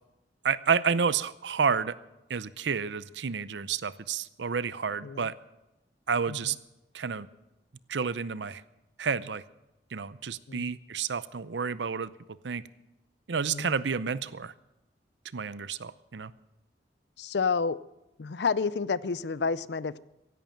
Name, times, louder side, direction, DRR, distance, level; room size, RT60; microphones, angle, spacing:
voice 1, 0.4-1.9 2.3-5.3 6.1-6.6 6.9-7.3 7.9-8.6 9.0-9.4 9.9-12.1 12.4-12.6 13.3-14.5 15.3-16.3, right 6 dB, 80° right, 0.6 m, -30 dB
voice 2, 17.2-17.8 18.2-20.0, left 5 dB, 70° left, 0.5 m, -29 dB
16.0 x 11.0 x 7.5 m
head